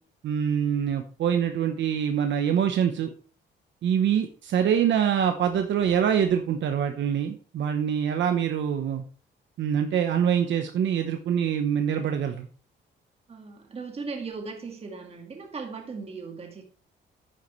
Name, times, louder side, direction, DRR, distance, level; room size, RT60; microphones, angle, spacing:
voice 1, 0.2-3.1 3.8-9.0 9.6-12.5, right 8 dB, 70° right, 1.0 m, -25 dB
voice 2, 13.3-16.6, right 4 dB, 30° right, 1.9 m, -38 dB
9.9 x 9.2 x 3.2 m
cardioid pair, 135°, 20 cm